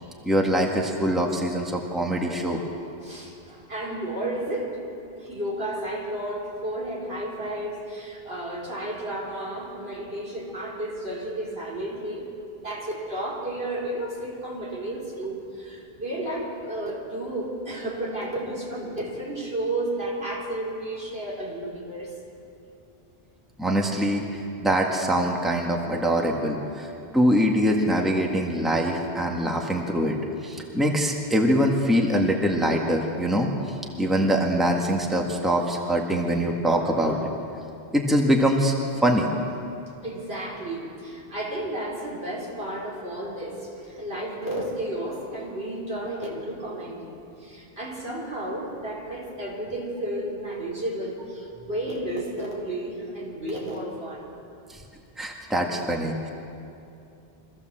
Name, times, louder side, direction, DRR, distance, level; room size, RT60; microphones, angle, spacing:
voice 1, 0.2-2.6 23.6-30.2 30.4-33.5 34.0-37.3 37.9-38.8 39.0-39.3 54.7-54.8 55.2-56.3, equal, ahead, 0 dB, 1.8 m, -23 dB
voice 2, 3.0-4.8 5.2-12.3 12.6-22.1 40.0-47.1 47.4-54.3, right 1 dB, 70° right, -4 dB, 4.5 m, -32 dB
24.5 x 15.5 x 7.6 m, 2.7 s
omnidirectional pair, 1.0 m